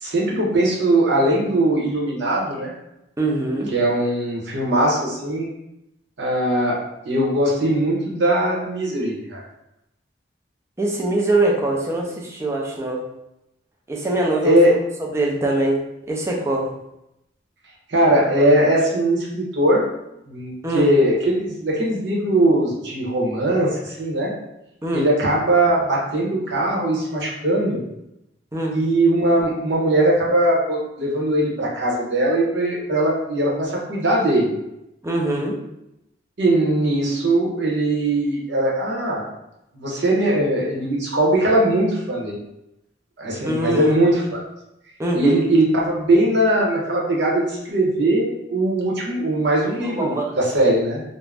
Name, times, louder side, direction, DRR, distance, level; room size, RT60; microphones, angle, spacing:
voice 1, 0.0-2.7 3.7-5.5 6.2-6.8 7.0-9.4 14.4-14.7 17.9-19.9 20.3-24.3 24.9-27.8 28.7-34.5 36.4-39.3 39.7-42.4 43.2-44.4 45.1-51.0, right 1 dB, 85° right, -3 dB, 0.8 m, -20 dB
voice 2, 3.2-3.7 10.8-13.0 13.9-14.6 15.0-15.8 16.1-16.7 20.6-20.9 24.8-25.1 28.5-28.8 35.0-35.6 43.4-44.0 45.0-45.4 49.8-50.3, right 2 dB, 15° right, -1 dB, 0.4 m, -23 dB
2.4 x 2.0 x 3.3 m, 0.86 s
head